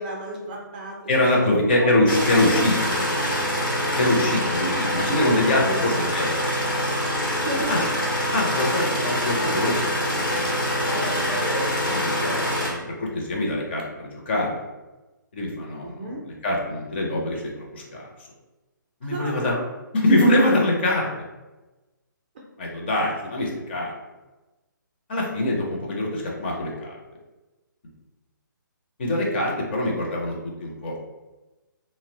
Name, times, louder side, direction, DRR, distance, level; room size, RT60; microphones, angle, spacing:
voice 1, 0.0-2.6 2.9-3.6 5.5-5.8 7.5-7.9 15.8-16.2 19.0-19.7, right 1 dB, 25° right, -3 dB, 0.4 m, -33 dB
voice 2, 1.1-3.0 4.0-6.3 7.7-7.8 8.3-11.1 11.9-12.5 13.0-14.6 15.3-18.1 19.0-19.5 19.9-21.1 22.6-23.9 25.1-27.0 29.0-31.0, left 1 dB, 30° left, -2 dB, 0.5 m, -24 dB
sound 1, 2.1-12.7, equal, 85° left, 0.9 m, -25 dB
2.7 x 2.0 x 2.6 m, 1.1 s
figure-of-eight pair, 135°, 11 cm